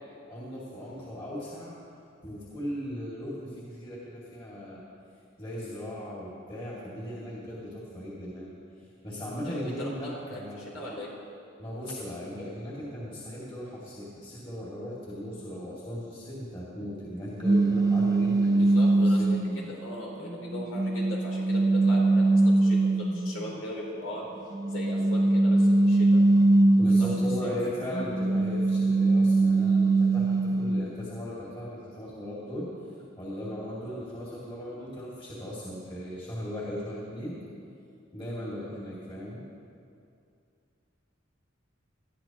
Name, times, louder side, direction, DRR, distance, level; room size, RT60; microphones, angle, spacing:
voice 1, 0.3-1.7 2.2-4.8 5.4-8.5 9.0-10.8 11.6-19.3 26.8-32.7 33.2-37.4 38.1-39.4, equal, 25° left, -7 dB, 2.4 m, -37 dB
voice 2, 9.4-11.1 18.5-24.3 24.7-26.2 26.8-27.1 27.4-27.5, equal, 85° left, -4 dB, 3.5 m, -39 dB
sound 1, 17.4-19.6 20.3-23.4 24.5-27.5 27.9-30.9, right 2 dB, 20° right, 0.4 m, -22 dB
20.0 x 12.5 x 3.0 m, 2.5 s
head